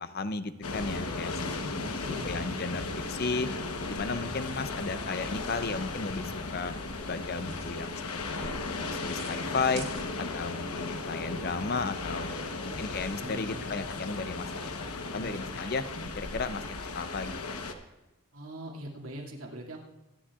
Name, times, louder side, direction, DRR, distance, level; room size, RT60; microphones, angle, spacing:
voice 1, 0.0-1.4 1.7-3.5 3.9-6.7 7.1-8.0 8.3-8.6 8.9-9.9 10.3-14.7 15.1-15.8 16.2-17.6, left 4 dB, 45° left, 11 dB, 0.6 m, -34 dB
sound 1, 0.6-17.7, left 3 dB, 90° left, 1.1 m, -36 dB
voice 2, 1.6-2.3 12.4-13.6 15.1-15.6 18.3-19.8, right 1 dB, 75° right, -1 dB, 2.4 m, -43 dB
sound 2, 5.2-10.4, right 3 dB, 45° right, 2.3 m, -51 dB
24.0 x 10.0 x 2.4 m, 1.1 s
head